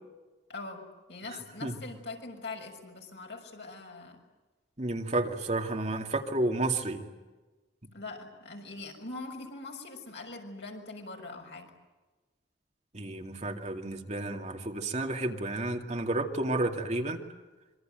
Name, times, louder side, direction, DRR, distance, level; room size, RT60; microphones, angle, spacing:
voice 1, 0.5-4.2 7.9-11.7, left 3 dB, 75° left, 2 dB, 6.6 m, -42 dB
voice 2, 1.3-1.8 4.8-7.1 12.9-17.2, right 2 dB, 40° right, 3 dB, 2.4 m, -31 dB
26.5 x 24.5 x 9.1 m, 1.2 s
head